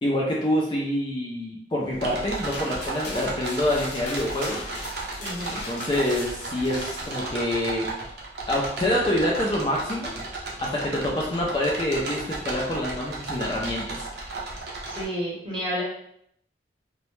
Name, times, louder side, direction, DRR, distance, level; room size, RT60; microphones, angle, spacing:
voice 1, 0.0-4.6 5.5-7.9 8.5-10.1 10.6-14.0, left 1 dB, 25° left, -3 dB, 0.3 m, -26 dB
sound 1, 1.9-7.3, left 2 dB, 70° left, 0.6 m, -39 dB
sound 2, 1.9-15.0, right 2 dB, 65° right, 0.5 m, -34 dB
voice 2, 5.2-5.6 14.8-15.8, equal, 25° right, -5 dB, 0.8 m, -31 dB
2.1 x 2.0 x 3.0 m, 0.72 s
head